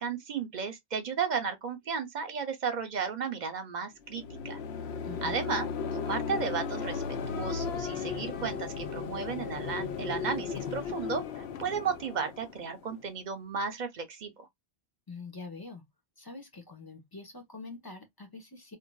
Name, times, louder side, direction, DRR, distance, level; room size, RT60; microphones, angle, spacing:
voice 1, 0.0-4.6 5.2-14.5, right 6 dB, 50° right, 0.8 m, -34 dB
sound 1, 4.1-13.1, left 6 dB, 90° left, 0.9 m, -36 dB
voice 2, 5.1-5.4 15.1-15.9 16.2-18.8, left 3 dB, 20° left, 1.0 m, -45 dB
3.7 x 2.7 x 2.2 m
omnidirectional pair, 1.1 m